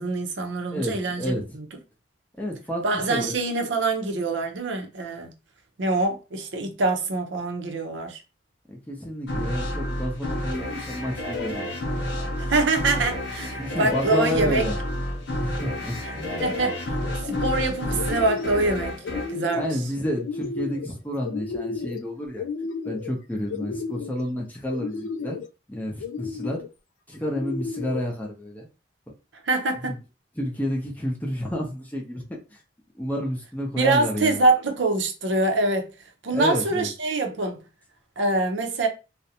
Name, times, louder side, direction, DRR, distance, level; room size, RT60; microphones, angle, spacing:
voice 1, 0.0-1.6 2.8-5.3 5.8-8.2 12.4-14.6 16.4-16.8 17.2-19.0 19.3-19.8 29.4-30.0 33.8-35.9 36.2-37.6 38.2-38.9, right 3 dB, 75° right, 0.6 m, -24 dB
voice 2, 0.7-1.4 2.4-3.3 8.7-11.8 13.6-14.8 15.4-16.5 19.5-22.4 22.8-25.4 25.7-26.6 27.1-28.7 29.8-30.0 30.4-32.6 33.0-34.4 36.3-36.9, equal, 10° left, 0.5 m, -30 dB
sound 1, 9.3-20.5, left 1 dB, 70° left, 0.8 m, -30 dB
sound 2, 16.1-16.6 17.0-17.7 18.0-18.7 19.0-19.8 20.2-20.9 21.2-22.0 22.4-23.1 23.5-24.2 24.7-25.5 26.0-26.7 27.2-28.0, left 5 dB, 90° left, 0.3 m, -33 dB
2.4 x 2.1 x 2.7 m
head